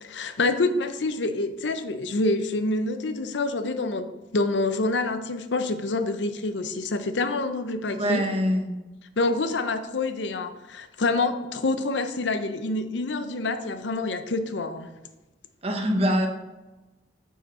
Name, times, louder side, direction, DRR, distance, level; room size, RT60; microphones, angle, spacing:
voice 1, 0.0-4.1 4.3-8.3 9.2-14.9, left 2 dB, 75° left, 9 dB, 0.6 m, -27 dB
voice 2, 7.9-8.7 15.6-16.3, equal, 35° right, 4 dB, 1.0 m, -24 dB
9.0 x 4.7 x 4.3 m, 1.1 s
head